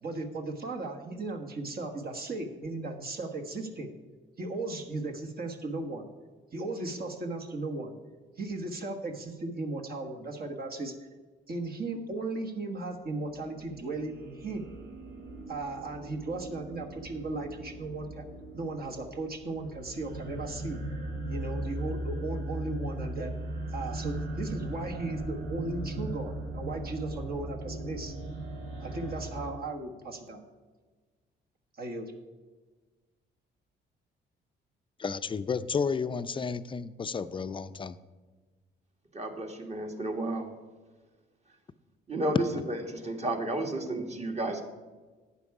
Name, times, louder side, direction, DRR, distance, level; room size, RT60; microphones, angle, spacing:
voice 1, 0.0-3.9 4.4-6.1 6.5-8.0 8.4-10.9 11.5-14.7 15.5-18.3 18.5-20.8 21.3-23.4 23.7-28.1 28.8-30.4 31.8-32.1, right 2 dB, 50° right, 2 dB, 1.5 m, -36 dB
sound 1, 13.3-29.5, right 1 dB, 75° right, 2.7 m, -38 dB
voice 2, 35.0-38.0, left 5 dB, 25° left, 12 dB, 0.5 m, -32 dB
voice 3, 39.1-40.5 42.1-44.6, right 1 dB, 35° right, 4 dB, 1.7 m, -32 dB
11.5 x 8.4 x 4.8 m, 1.3 s
cardioid pair, 90°, 20 cm